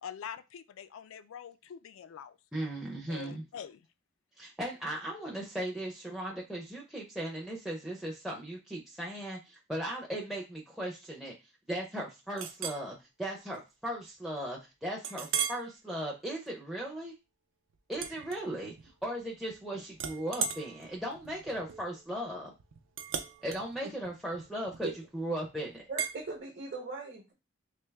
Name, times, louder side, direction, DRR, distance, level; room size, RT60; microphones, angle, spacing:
voice 1, 0.0-2.4 3.1-3.9, left 8 dB, 75° left, 13 dB, 0.3 m, -45 dB
voice 2, 2.5-3.4 4.4-11.3 11.7-17.1 17.9-18.7 19.0-22.5 23.4-24.9 25.1-25.8, right 1 dB, ahead, -1 dB, 0.5 m, -37 dB
Chink clink, 12.4-12.8 13.4-13.6 14.0-14.1 15.0-15.7 16.2-16.5 17.9-18.9 19.2-19.6 19.9-25.1 26.0-26.2, right 7 dB, 70° right, 0.4 m, -37 dB
voice 3, 25.9-27.3, right 3 dB, 50° right, -1 dB, 0.9 m, -39 dB
3.3 x 2.6 x 3.3 m, 0.26 s
head